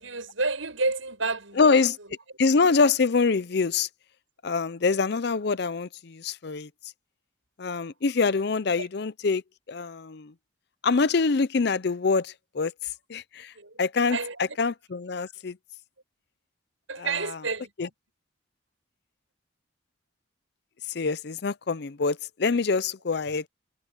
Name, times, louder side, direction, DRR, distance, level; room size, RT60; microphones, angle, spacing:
voice 1, 0.0-1.7 8.8-8.9 13.5-13.8 14.1-14.6 16.9-17.7, right 3 dB, 75° right, 7.6 m, -30 dB
voice 2, 1.6-2.0 2.4-3.9 4.4-6.7 7.6-9.4 9.7-10.3 10.8-12.7 13.1-13.5 13.8-14.2 14.6-15.6 17.8-17.9 20.9-23.4, left 4 dB, 55° left, 0.5 m, -25 dB
head